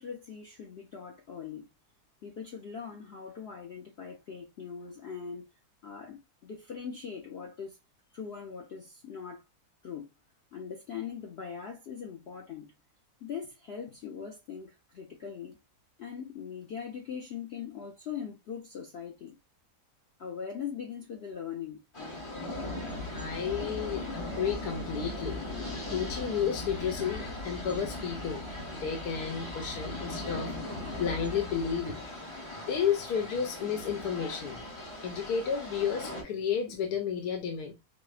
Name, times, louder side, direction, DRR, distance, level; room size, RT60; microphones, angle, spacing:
voice 1, 0.0-1.7 2.2-5.4 5.8-7.8 8.1-9.4 9.8-10.1 10.5-12.7 13.2-15.6 16.0-19.4 20.2-21.8, left 7 dB, 65° left, 0.6 m, -41 dB
sound 1, 21.9-36.2, left 2 dB, 25° left, 0.8 m, -38 dB
voice 2, 23.1-28.5 28.8-32.0 32.7-34.6 35.0-37.7, left 7 dB, 90° left, 1.2 m, -32 dB
4.8 x 2.1 x 2.3 m
omnidirectional pair, 1.7 m